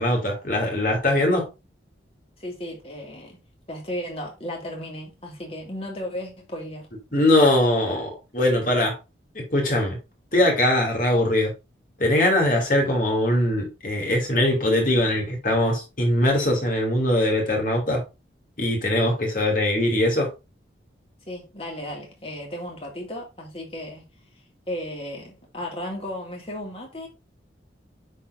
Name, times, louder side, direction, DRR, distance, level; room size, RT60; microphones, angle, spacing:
voice 1, 0.0-1.5 7.1-9.0 9.3-10.0 10.3-11.5 12.0-18.0 18.6-20.3, left 1 dB, 50° left, 2.7 m, -21 dB
voice 2, 2.4-3.4 3.7-6.9 21.3-24.0 24.7-27.1, left 1 dB, 35° left, 2.3 m, -34 dB
9.7 x 4.3 x 2.7 m
head